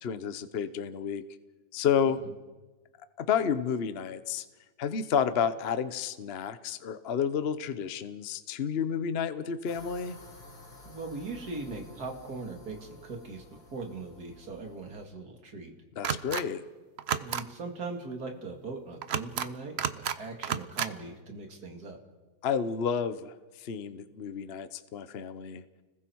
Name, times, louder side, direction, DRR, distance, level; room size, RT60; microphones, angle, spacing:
voice 1, 0.0-1.2 1.7-2.2 3.2-4.4 4.8-10.2 16.0-16.6 22.4-25.6, left 7 dB, 50° left, 12 dB, 0.7 m, -30 dB
sound 1, 9.6-15.0, left 2 dB, 65° left, 6.2 m, -52 dB
voice 2, 10.8-13.4 13.7-15.7 17.2-22.0, right 3 dB, 50° right, 2 dB, 3.0 m, -40 dB
sound 2, 16.0-16.4 17.0-17.4 19.0-19.5 19.8-20.2 20.4-20.9, right 8 dB, 80° right, 0.5 m, -31 dB
30.0 x 20.5 x 4.6 m, 1.2 s
omnidirectional pair, 2.2 m